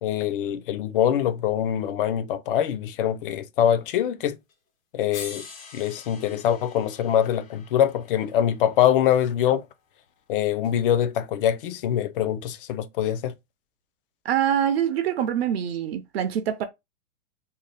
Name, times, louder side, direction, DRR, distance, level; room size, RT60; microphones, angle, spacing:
voice 1, 0.0-4.4 4.9-5.5 5.7-9.6 10.3-13.3, left 10 dB, 45° left, 0.4 m, -24 dB
sound 1, 4.5-4.6 5.1-9.3 10.6-10.7, left 5 dB, 85° left, 1.2 m, -44 dB
voice 2, 14.2-16.6, right 9 dB, 55° right, 0.5 m, -24 dB
2.7 x 2.2 x 3.2 m
hypercardioid pair, 150°, 39 cm